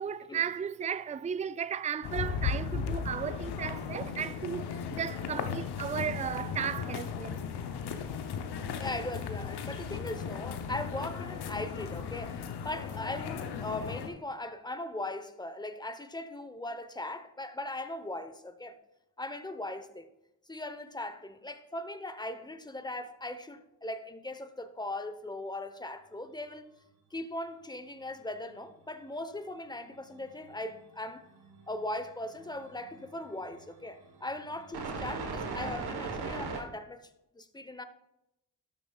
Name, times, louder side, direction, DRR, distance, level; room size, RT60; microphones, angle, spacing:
voice 1, 0.0-7.4, right 7 dB, 20° right, 0.3 m, -35 dB
sound 1, 2.0-14.1, left 6 dB, 75° left, 0.8 m, -36 dB
voice 2, 8.8-18.8 19.2-20.1 20.5-26.6 27.1-31.3 31.7-37.0 37.3-37.8, left 1 dB, 10° left, 0.9 m, -39 dB
sound 2, 28.6-28.7 30.0-30.9 31.2-36.6, right 4 dB, 70° right, 1.3 m, -40 dB
12.0 x 7.0 x 2.4 m
supercardioid pair, 40°, 39 cm